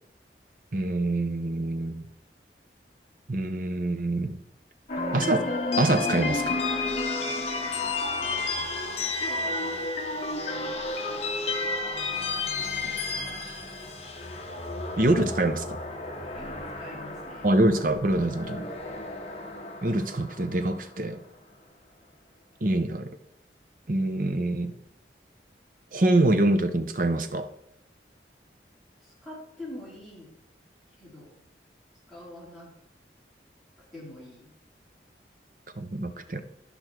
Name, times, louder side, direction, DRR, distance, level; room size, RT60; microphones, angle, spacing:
voice 1, 0.7-2.0 3.3-4.4 5.1-5.5 5.8-6.6 15.0-15.8 17.4-18.7 19.8-21.2 22.6-23.1 23.9-24.7 25.9-27.5 35.8-36.4, right 2 dB, 50° right, 9 dB, 0.8 m, -25 dB
sound 1, 4.9-21.1, left 3 dB, 35° left, 1.0 m, -31 dB
voice 2, 7.7-10.8 11.0-11.7 12.5-13.4 16.3-17.5 29.0-30.3 31.0-31.3 32.1-32.7 33.9-34.5, left 1 dB, ahead, -8 dB, 4.1 m, -46 dB
12.0 x 5.3 x 4.6 m, 0.80 s
head